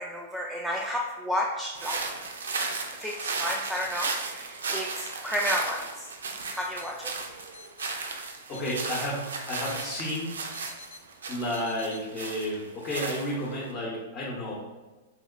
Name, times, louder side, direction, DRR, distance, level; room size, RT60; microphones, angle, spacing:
voice 1, 0.0-2.0 2.9-6.1 6.5-7.1, equal, ahead, -2 dB, 0.3 m, -32 dB
sound 1, 1.7-13.7, right 4 dB, 80° right, 0.4 m, -35 dB
sound 2, 6.5-6.9 7.5-7.9 8.5-9.0 9.5-10.0 10.5-11.0 11.5-12.0, left 4 dB, 80° left, 0.7 m, -47 dB
voice 2, 8.5-10.4 11.3-14.5, left 1 dB, 35° left, -4 dB, 0.8 m, -32 dB
2.9 x 2.9 x 2.4 m, 1.2 s
hypercardioid pair, 115°, 0 cm